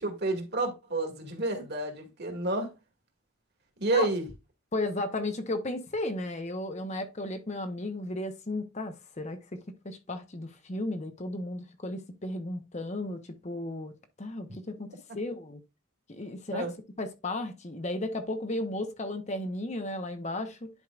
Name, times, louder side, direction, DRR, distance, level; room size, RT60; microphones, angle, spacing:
voice 1, 0.0-2.7 3.8-4.3 16.5-16.7, right 2 dB, 50° right, 2.0 m, -30 dB
voice 2, 4.7-9.6 9.8-13.9 14.2-15.6 16.1-16.7 17.0-20.7, left 2 dB, 30° left, 0.8 m, -34 dB
11.0 x 4.7 x 2.4 m
head